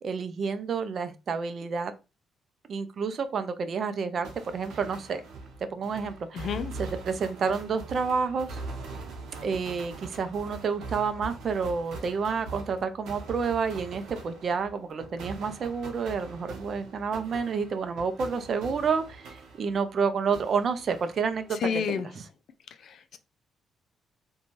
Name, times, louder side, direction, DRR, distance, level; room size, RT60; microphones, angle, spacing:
voice 1, 0.0-1.9 2.7-4.3 4.5-5.2 5.7-6.5 6.8-8.6 9.4-22.2, right 5 dB, 55° right, 0.4 m, -29 dB
sound 1, 4.2-20.0 20.3-21.7, right 3 dB, 85° right, 0.7 m, -42 dB
voice 2, 6.3-6.7 21.6-22.1 22.8-23.2, left 7 dB, 65° left, 0.4 m, -30 dB
2.5 x 2.2 x 3.0 m
cardioid pair, 75°, 0 cm